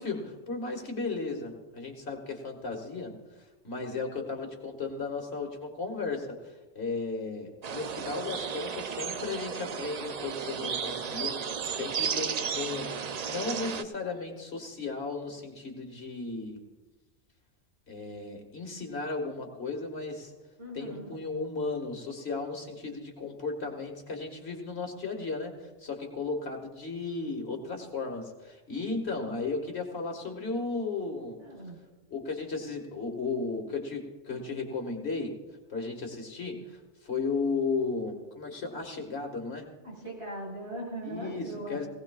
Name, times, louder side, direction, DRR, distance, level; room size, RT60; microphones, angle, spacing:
voice 1, 0.0-3.1 3.6-11.4 11.7-16.6 17.9-20.3 20.7-31.4 32.1-35.4 35.7-39.7 41.0-41.9, left 4 dB, 65° left, 3 dB, 2.1 m, -35 dB
sound 1, 7.6-13.8, right 6 dB, 50° right, 0.5 m, -34 dB
voice 2, 20.6-21.1 31.4-31.8 39.8-41.8, right 1 dB, 70° right, -4 dB, 5.6 m, -39 dB
19.0 x 17.5 x 2.4 m, 1.2 s
omnidirectional pair, 1.2 m